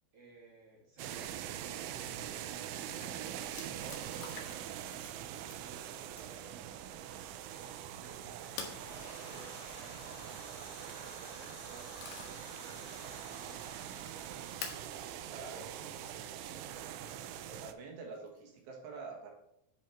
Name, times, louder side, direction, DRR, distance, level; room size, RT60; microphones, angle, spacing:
voice 1, 0.1-14.6 14.9-15.1 15.4-16.8, right 2 dB, 45° right, -4 dB, 2.2 m, -58 dB
sound 1, 1.0-17.7, right 11 dB, 85° right, 3.0 m, -43 dB
sound 2, 2.9-3.1 3.5-4.7 5.0-5.6 6.1-6.5 8.6-8.8 10.7-11.1 11.6-12.5 13.0-13.1 14.6-14.9 16.0-16.1 18.1-18.6, left 7 dB, 70° left, 2.9 m, -46 dB
sound 3, 8.5-17.0, left 4 dB, 90° left, 4.0 m, -55 dB
voice 2, 15.3-15.7 17.5-19.3, right 4 dB, 70° right, 0 dB, 3.4 m, -46 dB
10.5 x 5.0 x 4.4 m, 0.79 s
omnidirectional pair, 5.5 m